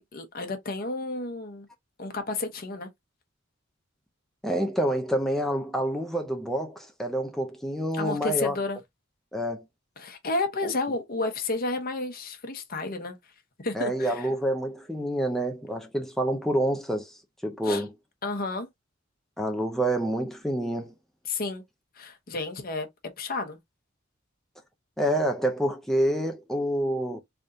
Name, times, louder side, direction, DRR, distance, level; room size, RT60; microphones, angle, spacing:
voice 1, 0.0-1.7 2.0-2.9 8.0-8.8 10.0-13.1 13.6-14.2 17.6-17.8 18.2-18.7 21.3-21.6 22.0-22.9 23.2-23.6, left 3 dB, 50° left, 0.9 m, -31 dB
voice 2, 4.4-8.6 9.3-9.7 10.6-10.7 13.7-17.9 19.4-20.9 25.0-27.2, right 1 dB, ahead, 0.5 m, -27 dB
3.5 x 2.6 x 3.7 m
head